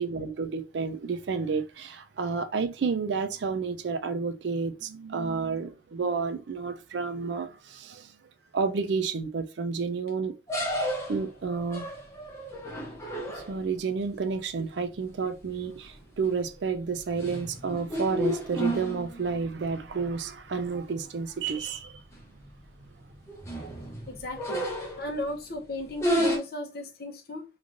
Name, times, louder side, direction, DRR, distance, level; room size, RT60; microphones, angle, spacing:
voice 1, 0.0-8.1 8.5-10.3 11.1-11.9 13.3-22.0 22.8-22.9 23.6-23.7, right 5 dB, 75° right, 0.4 m, -30 dB
sound 1, 10.5-13.8 15.5-15.7 16.1-16.5 16.9-19.4 19.9-20.0 20.3-20.4 21.2-21.3 21.6-21.8 22.1-22.5 23.1-25.3 25.9-26.4, equal, 15° left, 0.7 m, -31 dB
voice 2, 24.1-24.7 25.0-27.4, left 1 dB, 55° left, 0.7 m, -36 dB
3.1 x 2.5 x 2.5 m
head